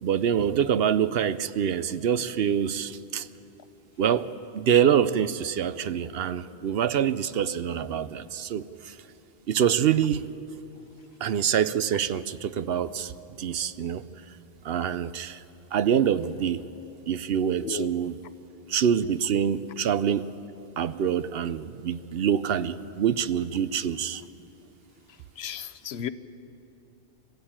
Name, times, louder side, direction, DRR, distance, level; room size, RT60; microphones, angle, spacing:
voice 1, 0.0-3.3 4.0-9.0 9.5-10.3 11.2-13.1 13.4-14.0 14.6-15.4 15.7-16.6 17.1-18.2 18.7-20.3 20.8-24.2, right 8 dB, 70° right, 14 dB, 0.9 m, -25 dB
voice 2, 25.4-26.1, left 9 dB, 85° left, 14 dB, 1.0 m, -34 dB
24.0 x 16.0 x 8.8 m, 2.8 s
omnidirectional pair, 1.1 m